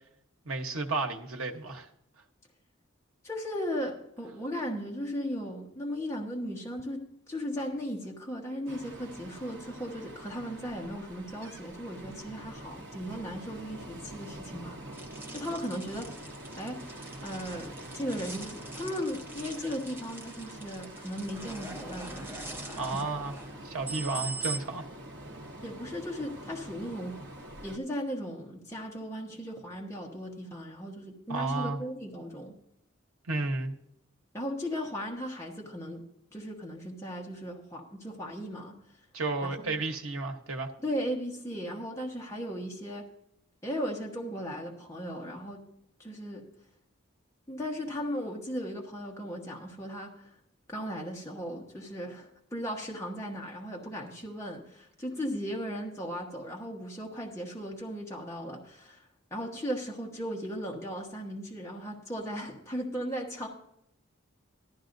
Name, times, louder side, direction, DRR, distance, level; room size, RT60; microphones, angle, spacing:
voice 1, 0.4-1.9 22.8-23.4 23.6-24.9 31.3-31.8 33.3-33.7 39.1-40.7, right 3 dB, 80° right, 1.1 m, -32 dB
voice 2, 3.2-14.8 15.3-16.2 16.6-22.8 25.6-27.2 27.6-32.5 34.3-36.1 36.3-38.7 39.4-39.8 40.8-43.1 43.6-45.6 46.0-46.4 47.5-50.3 50.7-59.0 59.3-63.5, equal, 15° left, 1.2 m, -37 dB
Ocean, 8.7-27.8, right 1 dB, 55° right, 1.0 m, -45 dB
sound 1, 14.9-24.6, right 4 dB, 10° right, 0.8 m, -43 dB
14.0 x 12.0 x 2.6 m
head